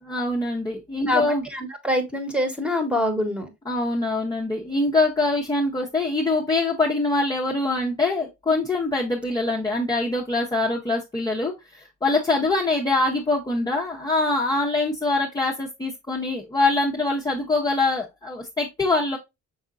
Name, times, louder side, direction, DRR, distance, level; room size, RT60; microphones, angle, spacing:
voice 1, 0.0-1.4 3.7-19.2, left 2 dB, 15° left, 0.8 m, -24 dB
voice 2, 1.1-3.5, left 1 dB, 5° right, 1.2 m, -25 dB
5.5 x 3.5 x 2.5 m
cardioid pair, 90°, 30 cm